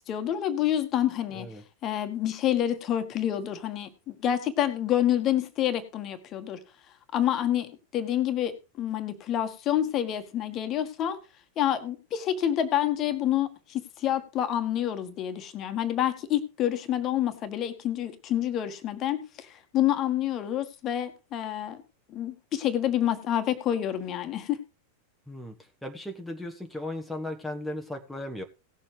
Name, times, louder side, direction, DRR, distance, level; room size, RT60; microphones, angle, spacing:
voice 1, 0.0-1.5 1.8-6.6 7.1-11.2 11.6-21.8 22.1-24.6, left 11 dB, 35° left, 8 dB, 1.5 m, -28 dB
voice 2, 1.3-1.6 25.3-28.4, left 1 dB, ahead, 2 dB, 1.3 m, -36 dB
18.0 x 7.2 x 3.3 m, 0.30 s
figure-of-eight pair, 90°, 0 cm